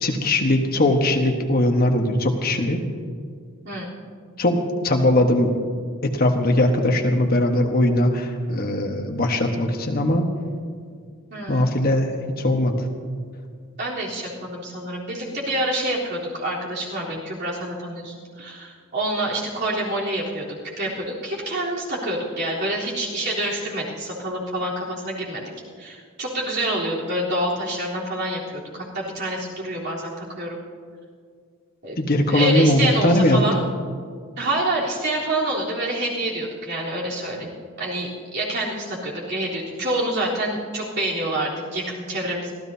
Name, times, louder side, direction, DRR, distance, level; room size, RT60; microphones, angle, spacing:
voice 1, 0.0-2.8 4.4-4.6 4.8-5.5 6.0-10.3 11.5-12.7 32.0-33.4, left 1 dB, 45° left, 3 dB, 1.3 m, -20 dB
voice 2, 11.3-11.8 13.8-20.4 20.8-25.4 25.8-30.6 31.8-33.6 34.4-37.5 37.8-42.6, right 1 dB, 50° right, -5 dB, 3.7 m, -27 dB
25.5 x 15.5 x 2.8 m, 2.1 s
head